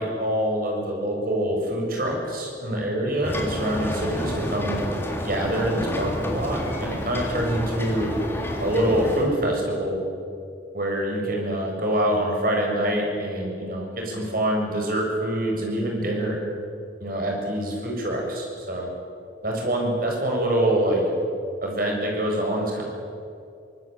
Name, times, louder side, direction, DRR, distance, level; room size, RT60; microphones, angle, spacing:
voice 1, 0.0-4.9 5.2-8.1 8.6-10.0 10.7-16.4 17.0-18.9 19.4-21.0 21.6-22.8, right 1 dB, 50° right, 0 dB, 7.2 m, -25 dB
sound 1, 3.2-9.3, equal, 15° left, 3.4 m, -29 dB
24.5 x 20.0 x 9.3 m, 2.5 s
head